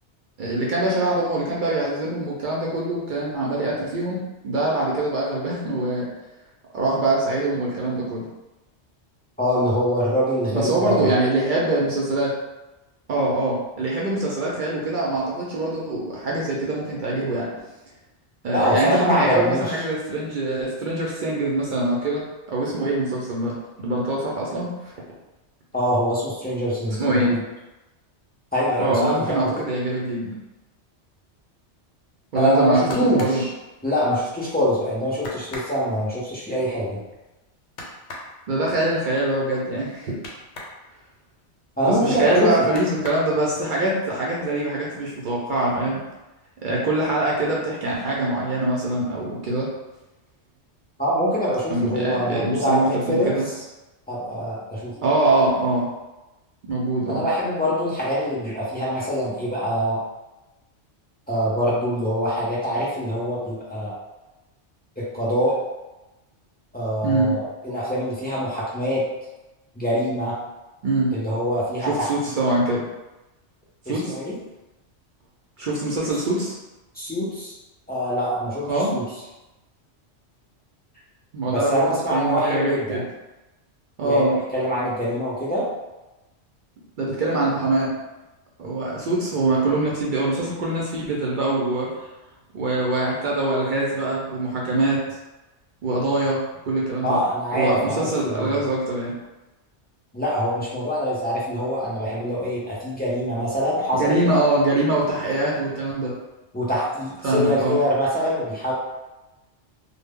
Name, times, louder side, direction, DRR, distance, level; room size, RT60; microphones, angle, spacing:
voice 1, 0.4-6.1 6.7-8.3 10.5-12.3 13.1-17.5 18.4-24.9 27.0-27.4 28.8-30.3 32.3-33.4 38.5-40.1 41.8-46.0 46.6-49.7 51.7-53.5 55.0-55.9 56.6-57.3 67.0-67.3 70.8-71.1 71.8-72.8 73.9-74.2 75.6-76.5 78.7-78.9 81.3-83.0 84.0-84.4 87.0-87.9 88.6-91.9 92.5-95.2 95.8-97.2 97.5-99.1 103.9-106.1 107.2-107.8, right 2 dB, 60° right, -4 dB, 0.6 m, -23 dB
voice 2, 9.4-11.1 18.5-19.7 25.7-27.4 28.5-29.5 32.3-33.5 33.8-37.0 41.8-42.7 51.0-53.3 54.1-55.0 57.1-60.0 61.3-63.9 65.0-65.6 66.7-69.0 69.7-70.3 71.1-72.3 73.9-74.3 76.9-77.5 77.9-79.0 81.5-83.0 84.0-84.3 84.5-85.7 97.0-98.5 100.1-104.2 106.5-108.7, equal, 15° left, -8 dB, 0.3 m, -24 dB
sound 1, 32.6-34.4 34.8-34.9 35.2-40.8 41.1-42.3 42.6-43.7 44.2-44.8 45.1-45.8 46.1-46.2, left 2 dB, 90° left, 0.9 m, -40 dB
2.1 x 2.0 x 3.5 m, 1.0 s
omnidirectional pair, 1.2 m